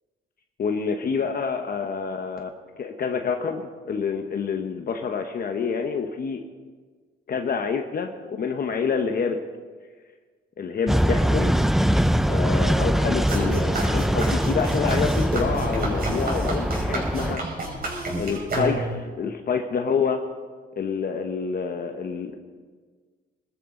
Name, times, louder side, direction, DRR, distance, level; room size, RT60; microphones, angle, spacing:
voice 1, 0.6-2.5 2.8-6.4 7.3-9.4 10.6-11.6 12.3-17.4 18.1-20.2 20.8-22.4, left 5 dB, 50° left, 5 dB, 1.1 m, -27 dB
sound 1, 10.9-17.4, equal, ahead, 0.5 m, -23 dB
sound 2, 13.3-19.1, right 2 dB, 50° right, 5.6 m, -30 dB
22.5 x 13.0 x 3.9 m, 1.5 s
cardioid pair, 90°, 20 cm